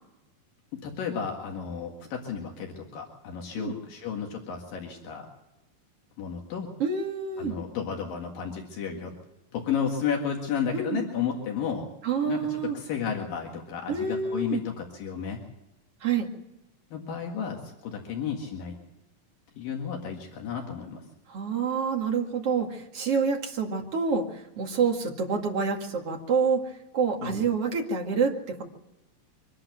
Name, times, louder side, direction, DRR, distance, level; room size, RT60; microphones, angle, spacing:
voice 1, 0.7-5.3 6.2-6.7 7.4-9.1 9.5-11.9 12.3-15.4 16.9-18.8 19.6-21.1 27.2-27.4, left 7 dB, 75° left, 1 dB, 3.7 m, -32 dB
voice 2, 6.8-7.6 10.7-11.1 12.0-12.8 13.9-14.6 16.0-16.3 21.3-28.6, right 5 dB, 45° right, 2 dB, 2.8 m, -27 dB
24.5 x 11.5 x 9.1 m, 1.0 s
omnidirectional pair, 4.0 m